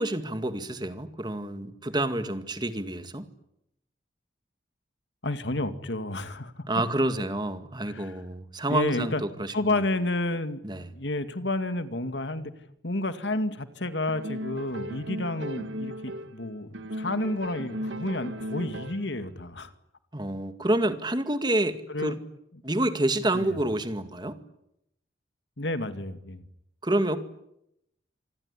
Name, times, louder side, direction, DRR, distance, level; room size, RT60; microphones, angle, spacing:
voice 1, 0.0-3.3 6.7-9.8 10.6-10.9 20.1-22.2 22.6-24.4 26.8-27.2, right 1 dB, 25° right, 10 dB, 2.1 m, -28 dB
voice 2, 5.2-6.6 7.8-8.2 8.7-9.2 9.5-10.6 10.9-12.5 12.8-19.7 21.9-22.2 23.3-23.6 25.6-26.4, left 2 dB, 75° left, 10 dB, 2.3 m, -30 dB
sound 1, 14.1-16.4 16.7-19.2, equal, 85° right, 1.9 m, -36 dB
27.0 x 20.5 x 9.9 m, 0.80 s
head